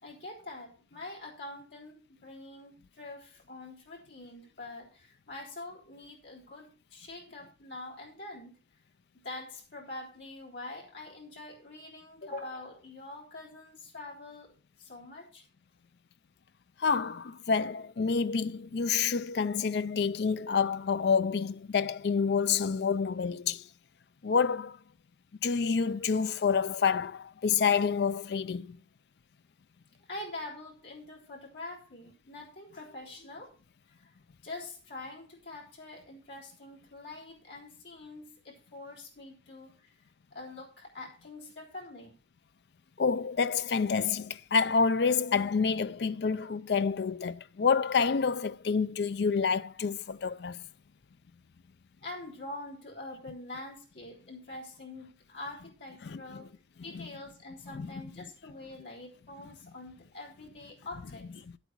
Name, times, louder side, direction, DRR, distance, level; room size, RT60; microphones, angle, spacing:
voice 1, 0.0-8.5 9.2-15.4 30.1-33.5 34.0-34.1 34.4-39.9 40.3-42.1 52.0-56.5 56.8-61.3, left 2 dB, 75° left, 3.5 m, -45 dB
voice 2, 16.8-23.7 24.2-24.8 25.4-28.8 43.0-50.6 56.0-56.4 56.9-57.1 57.7-57.9, left 5 dB, 60° left, 0.4 m, -28 dB
9.2 x 8.2 x 4.6 m
head